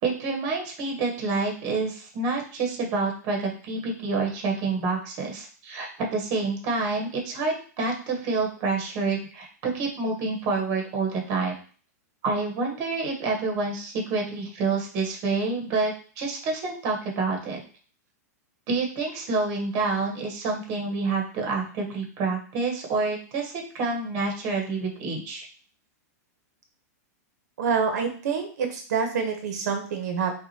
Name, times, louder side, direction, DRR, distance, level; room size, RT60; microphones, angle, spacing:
voice 1, 0.0-11.5 12.2-17.6 18.7-25.5, right 3 dB, 35° right, 0 dB, 1.1 m, -28 dB
voice 2, 27.6-30.3, right 5 dB, 75° right, 5 dB, 0.9 m, -27 dB
5.7 x 2.4 x 2.8 m, 0.42 s
supercardioid pair, 160°, 9 cm